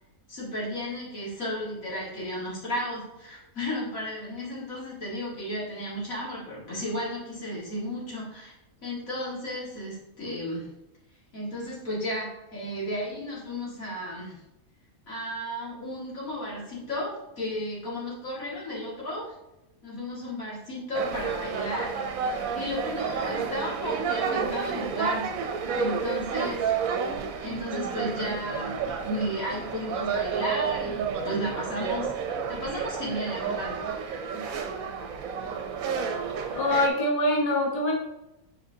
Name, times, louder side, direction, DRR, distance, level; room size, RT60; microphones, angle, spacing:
voice 1, 0.3-8.5 8.8-10.7 11.3-14.4 15.1-19.3 19.8-26.8 27.4-33.8, equal, 70° left, -6 dB, 2.5 m, -34 dB
sound 1, 20.9-36.9, right 6 dB, 70° right, 1.1 m, -30 dB
voice 2, 36.5-37.9, left 1 dB, 30° left, -1 dB, 1.0 m, -24 dB
7.8 x 4.6 x 2.8 m, 0.92 s
omnidirectional pair, 1.5 m